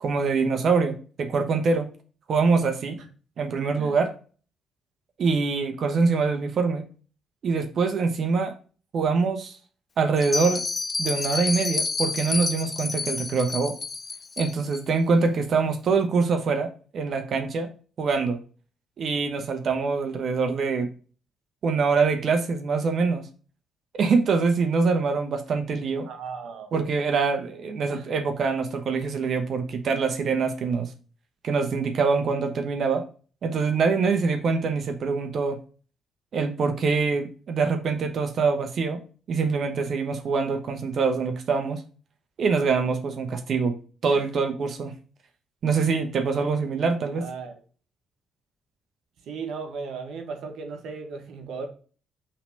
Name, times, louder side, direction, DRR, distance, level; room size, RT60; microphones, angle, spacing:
voice 1, 0.0-1.9 2.3-3.0 3.4-4.1 5.2-6.8 7.4-8.5 8.9-9.6 10.0-10.6 11.0-13.8 14.4-17.7 18.0-18.4 19.0-20.9 21.6-23.3 23.9-26.1 26.7-30.9 31.4-33.0 33.4-35.6 36.3-39.0 39.3-41.8 42.4-43.8 44.0-44.9 45.6-47.3, right 4 dB, 60° right, 6 dB, 1.1 m, -24 dB
Bell, 10.2-14.8, left 4 dB, 35° left, 0.5 m, -29 dB
voice 2, 26.0-26.7 27.9-28.1 44.1-44.3 47.1-47.5 49.2-51.7, right 5 dB, 75° right, 4 dB, 1.6 m, -36 dB
5.8 x 3.5 x 5.3 m, 0.37 s
cardioid pair, 90°, 0 cm